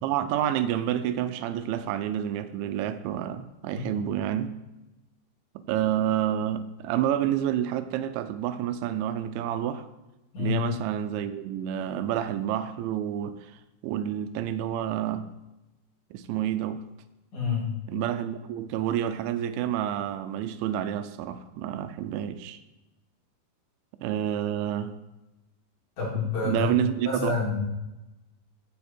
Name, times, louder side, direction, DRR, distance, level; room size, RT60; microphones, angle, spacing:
voice 1, 0.0-4.5 5.6-9.9 10.4-15.3 16.1-16.8 17.9-22.6 24.0-24.9 26.2-27.3, right 10 dB, 85° right, 11 dB, 3.0 m, -29 dB
voice 2, 10.3-10.6 17.3-17.7 26.0-26.7 27.0-27.6, left 5 dB, 45° left, -4 dB, 3.9 m, -28 dB
15.5 x 7.6 x 4.4 m, 1.0 s
omnidirectional pair, 5.2 m